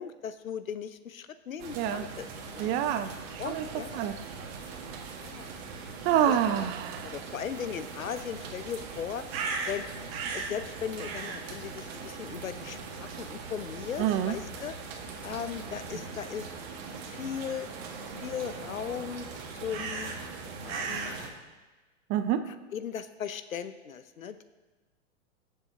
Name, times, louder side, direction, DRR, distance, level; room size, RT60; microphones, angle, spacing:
voice 1, 0.0-2.3 2.5-2.7 3.4-4.0 5.2-5.5 6.3-6.7 7.0-9.2 9.7-9.9 10.2-14.8 15.2-16.5 17.1-17.7 18.2-19.3 19.6-20.1 20.6-21.2 22.5-24.4, left 8 dB, 85° left, 12 dB, 0.8 m, -38 dB
sound 1, 1.6-21.3, right 4 dB, 50° right, 1.8 m, -39 dB
voice 2, 2.6-3.6 3.9-4.1 6.0-7.2 14.0-14.3 22.1-22.4, right 10 dB, 25° right, 11 dB, 0.5 m, -27 dB
20.5 x 7.1 x 2.9 m, 1.2 s
hypercardioid pair, 115°, 40 cm